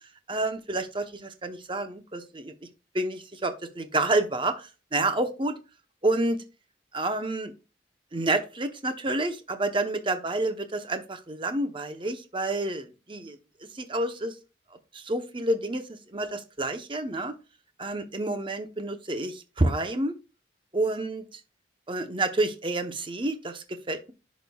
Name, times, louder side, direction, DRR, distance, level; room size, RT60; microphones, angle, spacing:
voice 1, 0.3-2.5 2.9-5.6 6.0-6.4 6.9-7.5 8.1-13.4 13.7-14.3 14.9-17.3 17.8-20.2 20.7-21.2 21.9-24.1, right 2 dB, 25° right, 8 dB, 0.8 m, -29 dB
10.5 x 5.2 x 2.3 m, 0.31 s
head